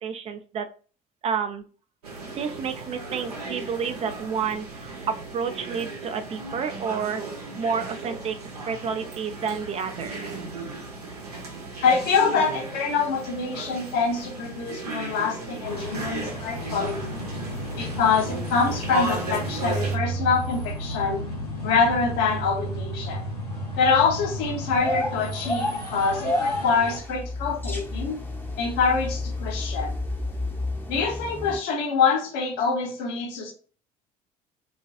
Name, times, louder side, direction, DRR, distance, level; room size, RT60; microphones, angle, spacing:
voice 1, 0.0-0.7 1.2-1.6 2.3-7.2 7.6-10.5, right 6 dB, 35° right, 7 dB, 0.4 m, -30 dB
sound 1, 2.0-20.0, right 3 dB, 80° right, 0.7 m, -36 dB
voice 2, 11.8-17.2 17.8-21.3 21.6-23.2 23.8-28.2 28.6-29.9 30.9-33.5, left 5 dB, 60° left, 2 dB, 0.9 m, -25 dB
sound 2, 15.6-27.0, right 1 dB, 90° left, 0.8 m, -33 dB
sound 3, 24.7-31.6, left 2 dB, 10° left, 0.7 m, -30 dB
2.5 x 2.2 x 2.4 m, 0.38 s
figure-of-eight pair, 60°, 19 cm